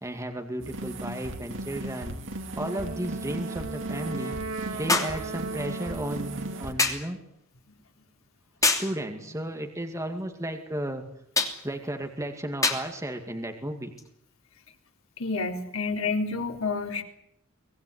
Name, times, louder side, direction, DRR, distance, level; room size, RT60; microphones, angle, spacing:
voice 1, 0.0-2.2 2.6-4.4 4.7-7.2 8.6-11.0 11.6-13.9, right 1 dB, 15° right, 4 dB, 2.2 m, -34 dB
sound 1, 0.6-6.7, right 1 dB, 65° right, 3.5 m, -37 dB
sound 2, 1.1-1.2 4.9-5.2 6.8-7.1 8.6-9.0 11.4-11.6 12.6-12.9 14.0-14.1, left 3 dB, 15° left, 2.9 m, -25 dB
Wind instrument woodwind instrument, 2.6-6.8, right 3 dB, 80° right, 3.2 m, -37 dB
voice 2, 15.2-17.0, left 4 dB, 75° left, 3 dB, 3.8 m, -29 dB
24.5 x 19.5 x 9.8 m, 0.74 s
head